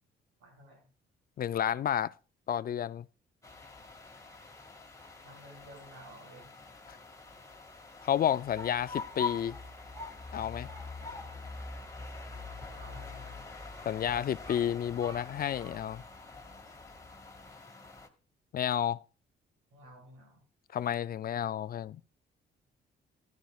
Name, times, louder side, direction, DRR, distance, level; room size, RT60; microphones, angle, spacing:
voice 1, 0.4-0.9 5.2-6.5 12.6-13.4 19.7-20.4, right 1 dB, 85° right, 6.6 m, -53 dB
voice 2, 1.4-2.1 2.5-3.1 8.0-9.6 10.3-10.7 13.9-16.0 18.5-19.0 20.7-22.0, left 10 dB, 50° left, 0.4 m, -31 dB
sound 1, 3.4-18.1, left 4 dB, 15° left, 2.0 m, -44 dB
16.0 x 12.0 x 2.4 m
cardioid pair, 90°, 20 cm